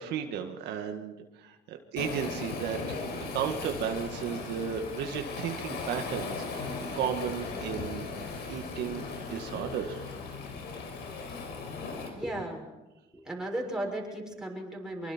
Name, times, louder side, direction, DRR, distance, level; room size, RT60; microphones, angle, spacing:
voice 1, 0.0-3.0 3.3-8.1 8.5-10.0, right 8 dB, 80° right, 4 dB, 1.9 m, -34 dB
Waves surf, 2.0-12.1, left 4 dB, 80° left, 5.4 m, -37 dB
voice 2, 12.1-12.7 13.1-15.1, right 1 dB, 5° right, -2 dB, 6.5 m, -36 dB
25.5 x 23.5 x 4.5 m, 1.0 s
cardioid pair, 110°, 17 cm